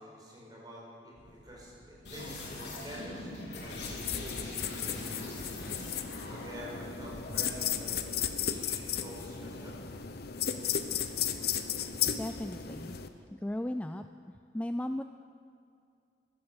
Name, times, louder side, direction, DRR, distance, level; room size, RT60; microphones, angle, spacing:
voice 1, 0.0-5.0 6.2-8.0 8.4-9.8, equal, 25° right, -4 dB, 4.7 m, -47 dB
sound 1, 1.1-9.2, equal, 75° right, 2.3 m, -59 dB
sound 2, 2.0-8.2, left 2 dB, 80° left, 3.5 m, -43 dB
sound 3, 3.7-13.1, left 8 dB, 60° left, 0.8 m, -35 dB
voice 2, 12.1-13.0 13.3-14.1 14.5-15.0, left 1 dB, 10° left, 7 dB, 0.3 m, -35 dB
14.5 x 12.0 x 7.2 m, 2.4 s
head